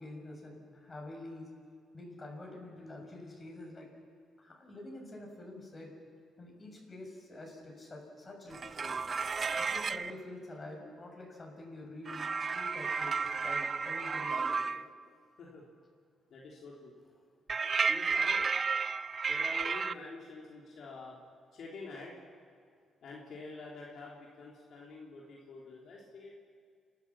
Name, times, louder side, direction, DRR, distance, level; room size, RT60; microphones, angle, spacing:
voice 1, 0.0-1.5 1.9-3.9 4.4-5.9 6.4-9.1 9.6-14.7, left 1 dB, 25° left, 0 dB, 6.7 m, -47 dB
sound 1, 8.5-10.1 12.1-14.9 17.5-19.9, right 5 dB, 40° right, 0.5 m, -32 dB
voice 2, 16.3-17.0 17.9-18.4 19.2-21.2 21.5-22.2 23.0-26.3, left 3 dB, 65° left, -4 dB, 3.2 m, -47 dB
30.0 x 12.5 x 7.4 m, 2.1 s
cardioid pair, 90°, 0 cm